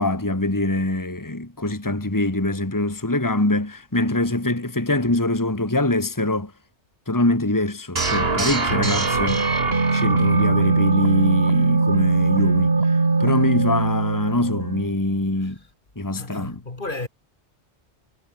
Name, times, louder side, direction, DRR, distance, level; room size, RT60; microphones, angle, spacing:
voice 1, 0.0-6.5 7.1-9.5 9.9-12.8 13.2-15.6 16.0-16.6, left 2 dB, 15° left, 2.2 m, -24 dB
sound 1, 7.9-14.9, right 3 dB, 55° right, 2.6 m, -20 dB
voice 2, 16.2-17.1, left 2 dB, 45° left, 2.6 m, -32 dB
omnidirectional pair, 1.2 m